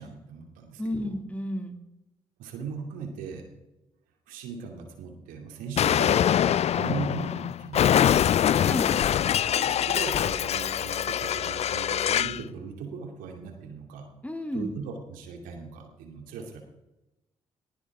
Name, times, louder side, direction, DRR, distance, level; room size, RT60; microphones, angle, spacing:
voice 1, 0.0-1.1 2.4-3.5 4.3-8.4 9.6-14.1 14.5-16.6, right 5 dB, 75° right, 3 dB, 2.5 m, -38 dB
voice 2, 0.8-1.8 8.6-8.9 14.2-14.7, left 1 dB, 10° left, 6 dB, 2.4 m, -32 dB
Explosion, 5.8-12.4, left 10 dB, 50° left, 0.4 m, -24 dB
19.5 x 15.5 x 3.6 m, 0.99 s
hypercardioid pair, 40°, 14 cm